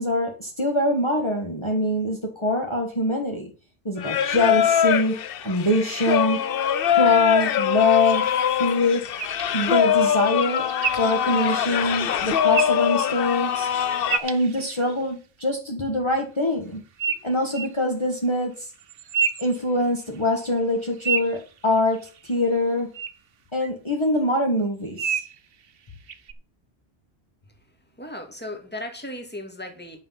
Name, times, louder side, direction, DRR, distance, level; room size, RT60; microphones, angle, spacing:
voice 1, 0.0-3.5 3.8-6.4 6.9-8.3 8.6-9.1 9.5-10.7 11.0-13.7 14.2-16.8 17.2-18.7 19.4-22.9 23.5-25.2, left 1 dB, 25° left, 1.6 m, -24 dB
Singing, 4.0-14.2, left 9 dB, 65° left, 0.8 m, -23 dB
sound 1, 9.2-15.1 17.0-17.8 18.8-20.2 20.6-22.3 22.9-23.1 23.6-23.7 25.0-25.4 26.1-26.3, right 7 dB, 65° right, 1.0 m, -31 dB
voice 2, 28.0-30.0, left 1 dB, 10° left, 2.0 m, -36 dB
10.0 x 5.8 x 5.8 m
omnidirectional pair, 1.1 m